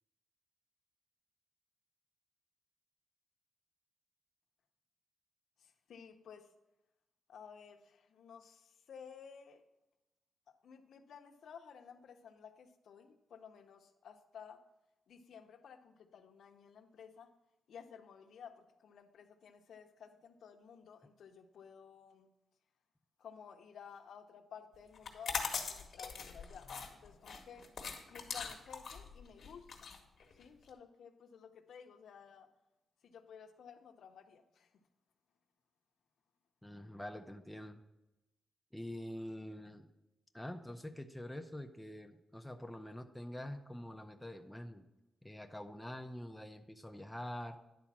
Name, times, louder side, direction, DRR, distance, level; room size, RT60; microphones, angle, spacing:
voice 1, 5.6-6.5 7.3-9.6 10.6-14.6 15.1-17.3 17.7-22.3 23.2-26.8 27.0-27.6 28.1-30.0 30.4-32.5 33.0-34.7, left 7 dB, 75° left, 7 dB, 0.7 m, -54 dB
sound 1, 25.0-30.7, left 5 dB, 55° left, 1.2 m, -42 dB
voice 2, 36.6-37.8 38.7-39.9 40.3-44.9 45.2-47.6, left 1 dB, 5° left, 5 dB, 0.5 m, -46 dB
10.5 x 4.1 x 6.0 m, 0.96 s
wide cardioid pair, 130°, 0 cm